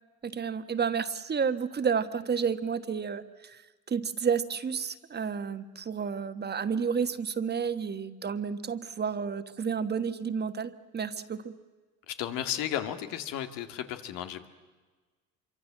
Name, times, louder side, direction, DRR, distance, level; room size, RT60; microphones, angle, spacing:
voice 1, 0.2-3.6 3.9-11.5, right 6 dB, 30° right, 10 dB, 1.4 m, -31 dB
voice 2, 12.1-14.5, left 11 dB, 80° left, 8 dB, 2.2 m, -34 dB
26.0 x 24.0 x 7.5 m, 1.4 s
cardioid pair, 100°, 34 cm